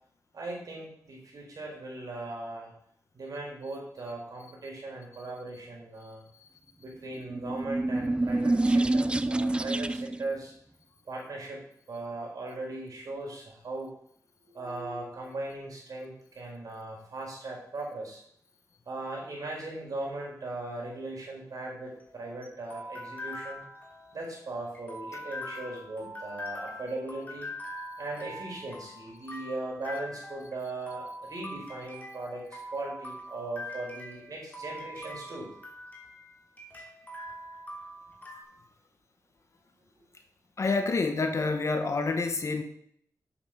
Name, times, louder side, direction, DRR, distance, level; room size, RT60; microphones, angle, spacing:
voice 1, 0.3-2.7 3.1-6.2 6.8-10.5 11.1-11.6 11.9-13.9 14.4-18.2 18.9-23.6 24.1-27.5 28.0-32.5 32.7-35.5 40.0-40.1, right 2 dB, 60° right, -1 dB, 4.4 m, -38 dB
sound 1, 7.3-10.3, right 2 dB, 15° right, 0.3 m, -27 dB
sound 2, 21.7-38.4, left 1 dB, 25° left, 2.7 m, -43 dB
voice 2, 40.6-42.6, left 3 dB, 45° left, 6 dB, 1.2 m, -27 dB
8.5 x 7.3 x 5.8 m, 0.66 s
wide cardioid pair, 95°, 7 cm